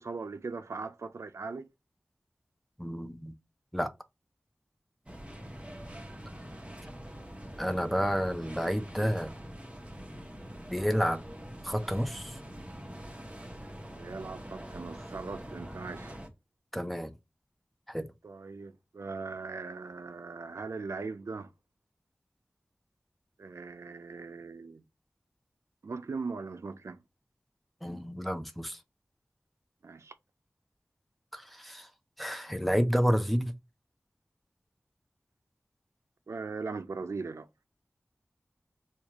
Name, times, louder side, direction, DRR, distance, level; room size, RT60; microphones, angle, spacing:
voice 1, 0.0-1.7 14.0-16.2 18.2-21.5 23.4-24.8 25.8-27.0 29.8-30.1 36.3-37.5, right 4 dB, 85° right, 0.4 m, -39 dB
voice 2, 2.8-3.3 3.7-3.9 7.6-9.3 10.7-11.2 11.6-12.4 16.7-17.1 17.9-18.1 27.8-28.8 31.3-31.9 32.2-33.5, equal, ahead, 0.6 m, -30 dB
sound 1, 5.1-16.3, equal, 25° right, 0.9 m, -44 dB
4.3 x 2.3 x 2.9 m
wide cardioid pair, 65°, 5 cm